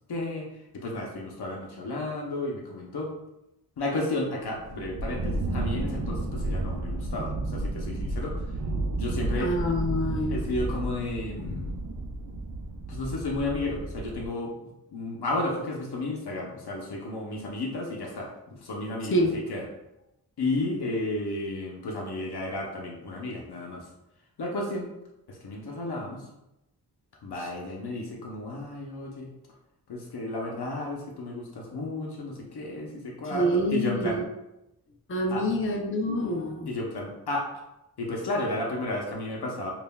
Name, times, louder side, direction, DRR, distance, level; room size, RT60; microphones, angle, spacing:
voice 1, 0.1-0.4 0.7-3.1 3.8-8.3 9.0-9.5 10.3-11.7 12.9-19.6 20.4-23.9 24.4-24.9 25.3-26.3 27.2-29.3 29.9-34.2 35.3-35.5 36.7-37.5 38.0-39.7, left 2 dB, 85° left, -1 dB, 0.7 m, -33 dB
Distant Thunder, 4.5-14.3, right 2 dB, 55° right, 0.6 m, -32 dB
voice 2, 9.4-10.4 11.4-11.7 19.1-19.4 33.3-34.2 35.1-36.7, equal, 35° left, 1 dB, 0.6 m, -27 dB
5.2 x 2.4 x 2.2 m, 0.91 s
cardioid pair, 55°, 38 cm